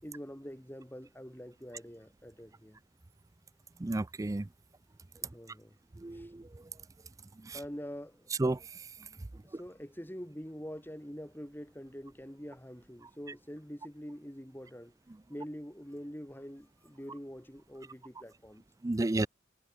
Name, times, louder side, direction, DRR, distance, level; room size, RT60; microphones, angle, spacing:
voice 1, 0.0-2.8 5.2-5.8 6.1-6.3 7.5-8.3 9.4-14.9 15.3-18.6, equal, 10° left, 3.4 m, -45 dB
voice 2, 3.8-4.5 6.0-6.4 7.5-7.6 8.4-8.6 18.8-19.3, right 2 dB, 20° right, 0.4 m, -31 dB
head